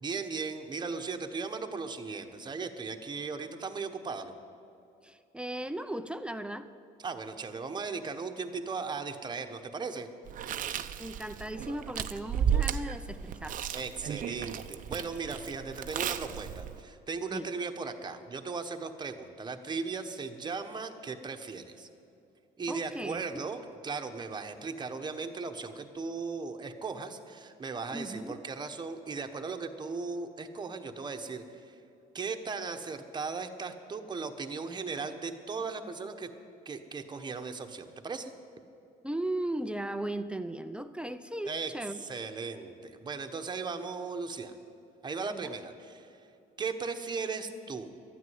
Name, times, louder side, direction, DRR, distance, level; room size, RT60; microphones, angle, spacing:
voice 1, 0.0-4.3 7.0-10.1 13.7-21.9 22.6-31.7 32.1-36.3 36.6-38.3 41.5-41.7 42.0-44.5 45.0-46.1 46.6-47.9, right 4 dB, 25° right, 6 dB, 1.1 m, -37 dB
voice 2, 5.0-6.7 11.0-13.6 17.3-17.5 22.7-23.5 27.9-28.4 39.0-42.0 45.3-45.5, right 1 dB, 5° right, 10 dB, 0.5 m, -37 dB
Chewing mastication, 10.3-16.8, right 8 dB, 50° right, 0.7 m, -34 dB
13.0 x 9.5 x 9.5 m, 2.6 s
cardioid pair, 110°, 17 cm